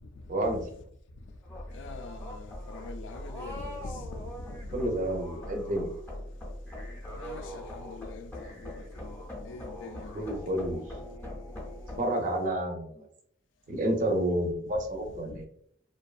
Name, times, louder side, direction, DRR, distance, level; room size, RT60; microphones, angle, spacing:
voice 1, 0.3-0.6 4.7-5.9 10.1-10.8 12.0-13.1 13.7-15.5, right 1 dB, 45° right, 0.5 m, -29 dB
sound 1, 1.4-12.0, left 1 dB, 10° left, 0.5 m, -41 dB
voice 2, 1.7-5.1 7.1-9.1 9.4-10.3 15.3-15.4, left 3 dB, 85° left, 0.3 m, -44 dB
2.5 x 2.2 x 2.3 m
head